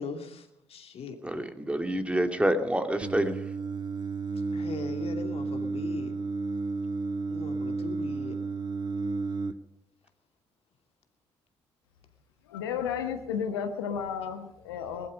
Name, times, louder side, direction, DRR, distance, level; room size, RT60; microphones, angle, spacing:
voice 1, 0.0-1.2 4.5-6.1 7.3-8.4, left 5 dB, 50° left, 5 dB, 2.7 m, -40 dB
voice 2, 1.2-3.3, right 1 dB, 10° right, 6 dB, 2.3 m, -27 dB
Singing, 3.0-9.5, right 4 dB, 35° right, 1.3 m, -32 dB
voice 3, 12.5-15.1, left 7 dB, 80° left, 6 dB, 1.3 m, -32 dB
20.0 x 12.5 x 5.3 m, 0.80 s
figure-of-eight pair, 45°, 13 cm